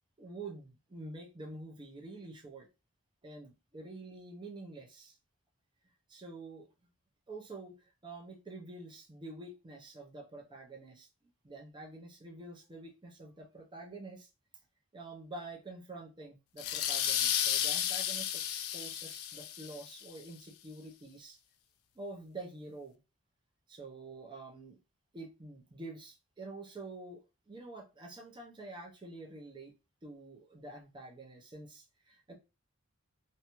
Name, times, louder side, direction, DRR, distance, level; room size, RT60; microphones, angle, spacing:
voice 1, 0.2-2.7 3.2-5.1 6.1-6.7 7.3-11.1 11.4-14.3 14.9-21.4 22.0-23.0 23.7-24.8 25.1-29.7 30.0-32.3, right 2 dB, 20° right, 0.6 m, -47 dB
sound 1, 16.6-20.0, left 10 dB, 85° left, 0.4 m, -33 dB
2.6 x 2.2 x 2.9 m
head